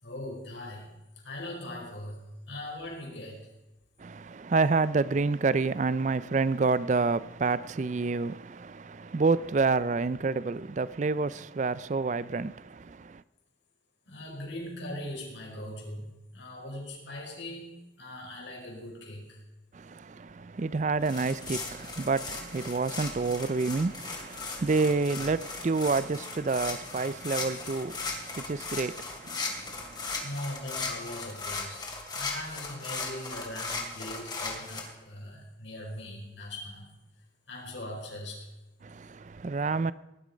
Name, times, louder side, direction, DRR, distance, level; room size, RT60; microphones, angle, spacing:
voice 1, 0.0-0.9 1.2-3.5 14.1-19.4 30.2-36.9 37.5-38.5, left 1 dB, 75° left, 5.2 m, -40 dB
voice 2, 4.0-13.2 19.7-30.3 38.8-39.9, right 4 dB, 40° right, 0.4 m, -29 dB
sound 1, 21.0-34.8, left 4 dB, 20° left, 2.7 m, -37 dB
19.0 x 11.5 x 5.1 m
head